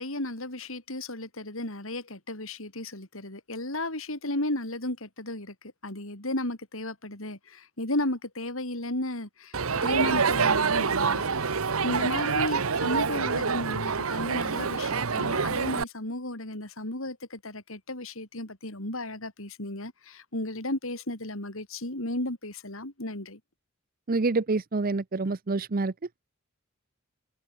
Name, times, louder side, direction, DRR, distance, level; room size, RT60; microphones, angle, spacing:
voice 1, 0.0-9.6 9.8-23.4, left 1 dB, 70° left, 5.8 m, -34 dB
Crowd, 9.5-15.8, right 5 dB, 80° right, 1.1 m, -26 dB
voice 2, 24.1-25.9, right 3 dB, 45° right, 0.7 m, -27 dB
head